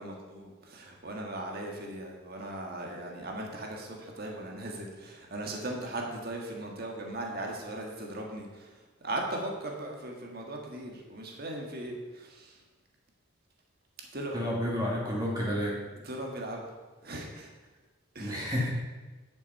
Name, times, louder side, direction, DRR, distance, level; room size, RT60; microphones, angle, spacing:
voice 1, 0.0-12.6 14.1-14.6 16.0-16.8 17.0-17.5 18.2-18.7, right 1 dB, 50° right, 0 dB, 1.7 m, -38 dB
voice 2, 14.3-15.8 18.2-18.7, equal, 20° right, -4 dB, 2.2 m, -30 dB
10.0 x 6.6 x 5.5 m, 1.2 s
head